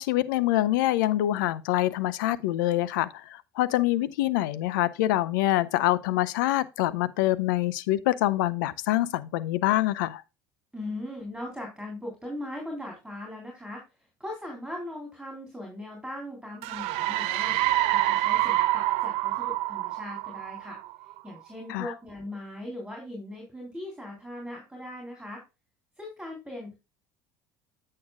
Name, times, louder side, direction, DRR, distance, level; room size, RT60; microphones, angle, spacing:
voice 1, 0.0-3.1 3.6-10.2 21.7-21.9, left 15 dB, 80° left, 0.5 m, -25 dB
voice 2, 10.7-13.8 14.2-20.8 21.2-25.4 26.0-26.8, left 1 dB, 5° right, 3.3 m, -39 dB
sound 1, 16.6-21.2, right 16 dB, 65° right, 0.4 m, -27 dB
8.6 x 6.6 x 2.3 m
hypercardioid pair, 75°, 10 cm